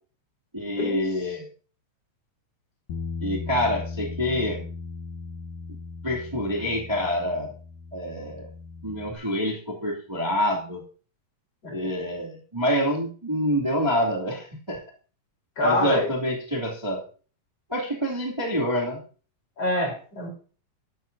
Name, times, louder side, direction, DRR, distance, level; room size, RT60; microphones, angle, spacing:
voice 1, 0.5-1.5 3.2-4.6 5.7-5.8 6.0-7.5 7.9-8.5 8.8-10.8 11.7-14.8 15.6-17.0 17.7-19.0, equal, 10° right, -3 dB, 2.2 m, -26 dB
Bass guitar, 2.9-9.1, left 4 dB, 75° left, 2.7 m, -37 dB
voice 2, 15.6-16.1 19.6-20.3, left 2 dB, 50° left, 2 dB, 4.9 m, -25 dB
14.5 x 12.0 x 2.7 m, 0.39 s
omnidirectional pair, 3.8 m